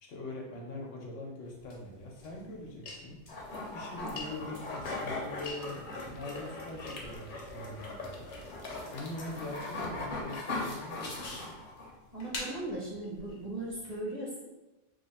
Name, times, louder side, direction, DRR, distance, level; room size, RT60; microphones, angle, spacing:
voice 1, 0.0-3.2 3.7-8.3 8.9-11.4, left 2 dB, 85° left, 0 dB, 1.1 m, -43 dB
sound 1, 1.4-14.0, left 3 dB, 70° left, 1.1 m, -49 dB
sound 2, 3.3-11.9, left 2 dB, 50° left, 0.7 m, -39 dB
voice 2, 12.1-14.3, right 1 dB, 40° right, -5 dB, 0.7 m, -38 dB
3.1 x 2.1 x 4.1 m, 1.1 s
omnidirectional pair, 1.2 m